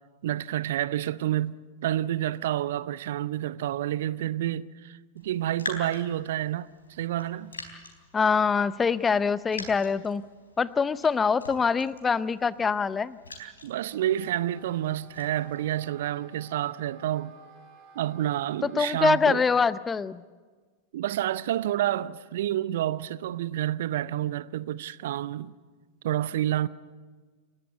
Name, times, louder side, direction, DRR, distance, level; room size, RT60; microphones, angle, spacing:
voice 1, 0.2-6.7 7.0-7.6 13.4-17.4 18.0-19.4 20.9-25.5 26.0-26.7, right 12 dB, 55° right, 0.6 m, -29 dB
Raindrop, 5.2-15.8, left 3 dB, 75° left, 4.1 m, -45 dB
voice 2, 8.1-10.2 10.6-13.2 18.6-20.2, left 5 dB, 15° left, 0.6 m, -24 dB
Wind instrument woodwind instrument, 13.8-19.5, right 4 dB, 35° right, 7.5 m, -53 dB
29.0 x 14.0 x 8.1 m
figure-of-eight pair, 90°, 0 cm